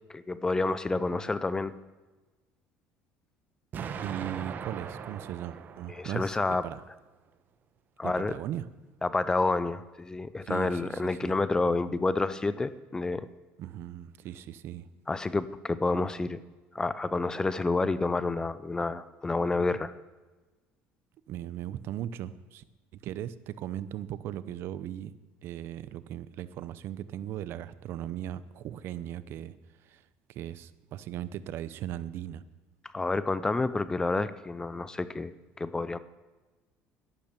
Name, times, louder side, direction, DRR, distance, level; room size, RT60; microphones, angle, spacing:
voice 1, 0.1-1.7 6.0-6.6 8.0-8.3 9.0-13.3 15.1-16.4 16.7-19.9 32.9-36.0, left 3 dB, 15° left, 15 dB, 0.6 m, -29 dB
Explosion, 3.7-6.7, right 7 dB, 40° right, 1.1 m, -40 dB
voice 2, 4.0-6.8 8.0-8.7 10.4-11.4 13.6-14.9 21.3-22.6 22.9-25.1 25.4-32.4, right 11 dB, 60° right, 16 dB, 0.7 m, -38 dB
12.0 x 11.5 x 6.9 m, 1.2 s
cardioid pair, 120°, 5 cm